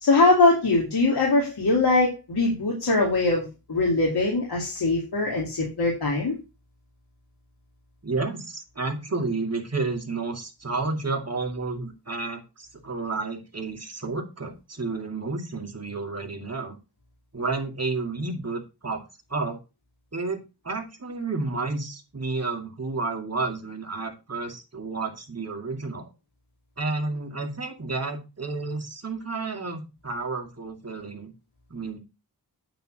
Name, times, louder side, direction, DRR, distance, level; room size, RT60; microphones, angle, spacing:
voice 1, 0.0-6.3, left 3 dB, 80° left, -2 dB, 2.6 m, -22 dB
voice 2, 8.0-12.4 12.8-16.8 17.3-19.0 19.3-19.6 20.1-20.4 20.6-26.1 26.8-31.3 31.7-32.0, right 3 dB, 40° right, 2 dB, 2.4 m, -31 dB
9.1 x 4.3 x 6.3 m, 0.28 s
cardioid pair, 55°, 38 cm